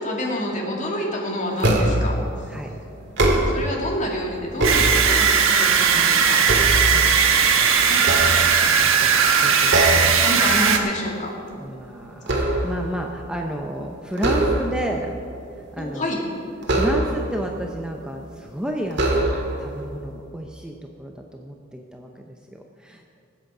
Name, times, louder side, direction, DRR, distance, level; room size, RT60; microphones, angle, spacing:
voice 1, 0.0-2.2 3.5-6.4 7.8-8.0 10.2-11.3 15.8-16.2, left 1 dB, 40° left, -1 dB, 2.3 m, -28 dB
sound 1, 1.6-2.2 3.0-3.8 4.3-5.4 5.9-7.4 8.0-9.0 9.7-10.2 10.6-10.8 11.2-12.9 14.1-15.0 16.6-17.4 18.2-18.3 18.9-19.7, right 1 dB, 60° right, 1.9 m, -22 dB
sound 2, 4.6-10.8, right 6 dB, 90° right, 1.1 m, -18 dB
voice 2, 8.6-10.2 11.6-15.2 15.5-16.2 16.7-23.1, equal, 5° right, 1 dB, 0.7 m, -32 dB
20.0 x 7.9 x 4.9 m, 2.6 s
head